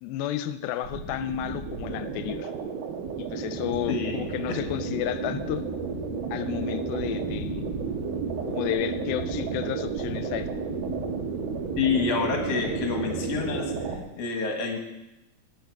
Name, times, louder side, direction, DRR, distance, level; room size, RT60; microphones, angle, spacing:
voice 1, 0.0-2.5 3.2-5.6 6.3-7.6 8.5-10.5, left 12 dB, 85° left, 11 dB, 2.3 m, -32 dB
sound 1, 0.8-14.0, right 6 dB, 85° right, 3.3 m, -33 dB
sound 2, 3.5-13.9, right 1 dB, 65° right, 3.7 m, -38 dB
voice 2, 11.8-13.7 14.2-14.8, left 5 dB, 50° left, 2 dB, 2.1 m, -27 dB
17.5 x 6.9 x 4.7 m, 0.95 s
omnidirectional pair, 4.3 m